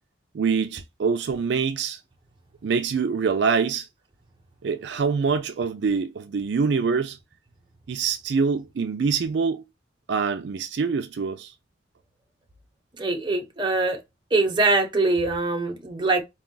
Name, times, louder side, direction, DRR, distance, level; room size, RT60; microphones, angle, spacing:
voice 1, 0.3-2.0 2.6-3.9 4.6-7.2 7.9-9.6 10.1-11.5, right 5 dB, 70° right, 0.4 m, -25 dB
voice 2, 13.0-14.0 14.3-16.2, right 3 dB, 25° right, 0.8 m, -23 dB
4.7 x 2.3 x 3.8 m
head